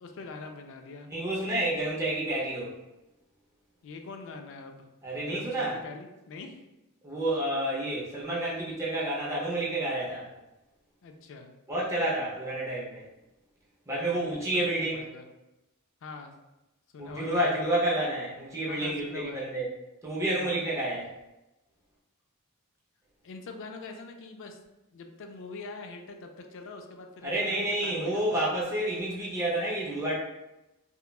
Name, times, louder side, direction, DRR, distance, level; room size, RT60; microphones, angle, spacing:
voice 1, 0.0-1.1 3.8-4.8 5.2-6.6 11.0-11.5 14.0-15.2 16.0-16.3 16.9-17.6 18.7-19.5 20.3-20.6 23.2-24.6 24.9-28.5, left 3 dB, 60° left, 4 dB, 0.4 m, -44 dB
voice 2, 1.1-2.7 5.0-5.8 7.0-10.3 11.7-13.0 13.9-15.0 17.0-19.7 20.0-21.1 27.2-30.2, right 1 dB, 15° right, -6 dB, 0.5 m, -29 dB
2.9 x 2.2 x 2.3 m, 0.98 s
head